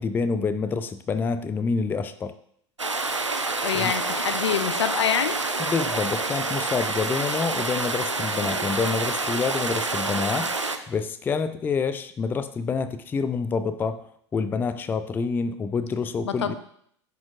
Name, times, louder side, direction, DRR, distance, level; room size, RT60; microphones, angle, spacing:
voice 1, 0.0-2.3 3.7-3.9 5.6-10.5 10.9-14.0 14.3-16.6, left 5 dB, 15° left, 11 dB, 0.3 m, -27 dB
sound 1, 2.8-10.8, right 3 dB, 90° right, 0.4 m, -27 dB
voice 2, 3.6-5.4 16.2-16.6, left 8 dB, 70° left, 10 dB, 0.5 m, -26 dB
10.5 x 4.4 x 2.4 m, 0.67 s
figure-of-eight pair, 80°, 15 cm